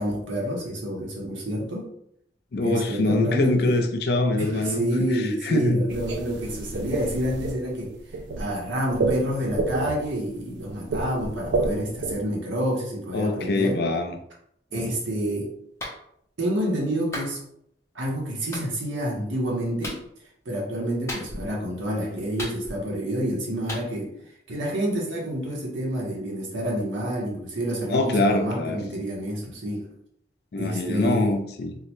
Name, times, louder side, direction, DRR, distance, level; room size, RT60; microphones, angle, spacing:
voice 1, 0.0-1.9 2.6-3.8 4.4-7.9 8.4-13.8 14.7-15.5 16.4-17.4 17.9-20.0 20.4-24.1 24.5-29.9 30.6-31.3, equal, 90° right, 1.0 m, -28 dB
voice 2, 2.5-4.8 5.4-5.8 13.1-14.2 14.7-14.9 27.9-28.8 30.5-31.8, left 2 dB, 55° left, 0.4 m, -24 dB
sound 1, 5.9-12.1, right 3 dB, 70° right, 0.4 m, -29 dB
Clapping, 15.8-16.0 17.1-17.3 18.5-18.7 19.8-20.0 21.1-21.5 22.4-22.9 23.7-23.9, left 1 dB, 15° left, 0.6 m, -34 dB
3.7 x 2.1 x 3.0 m
head